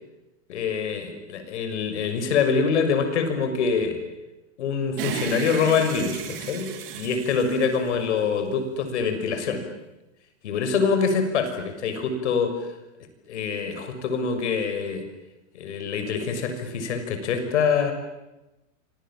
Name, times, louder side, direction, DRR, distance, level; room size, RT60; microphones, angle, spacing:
voice 1, 0.5-4.0 4.6-9.6 10.4-12.7 13.3-15.0 15.5-17.9, left 5 dB, 60° left, 7 dB, 6.3 m, -25 dB
sound 1, 5.0-8.5, right 8 dB, 45° right, 4.1 m, -34 dB
28.5 x 26.0 x 7.6 m, 0.99 s
supercardioid pair, 170°, 38 cm